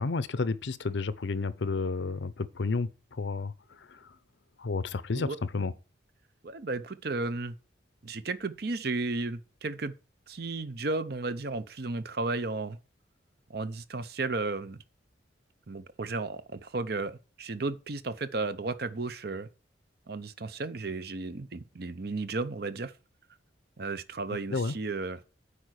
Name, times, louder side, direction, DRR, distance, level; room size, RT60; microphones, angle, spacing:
voice 1, 0.0-3.5 3.9-4.0 4.6-5.7 24.5-24.7, left 3 dB, 65° left, 0.6 m, -31 dB
voice 2, 6.4-7.5 8.0-9.9 10.3-12.8 13.5-14.8 15.7-19.5 20.1-22.9 23.8-25.2, right 3 dB, 55° right, 0.7 m, -34 dB
8.6 x 4.9 x 6.4 m
head